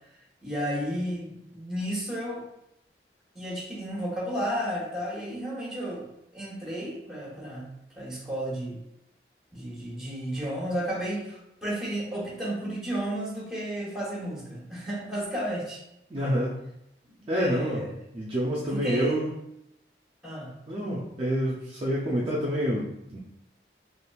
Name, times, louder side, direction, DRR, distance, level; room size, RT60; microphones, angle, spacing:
voice 1, 0.4-2.4 3.3-8.8 9.5-15.8 16.2-16.3 17.2-17.9 18.7-19.2 20.2-20.5, right 1 dB, ahead, -5 dB, 0.9 m, -33 dB
voice 2, 16.1-16.6 17.3-17.8 18.1-19.3 20.7-23.2, equal, 30° right, -5 dB, 0.4 m, -27 dB
3.5 x 2.5 x 2.3 m, 0.81 s
head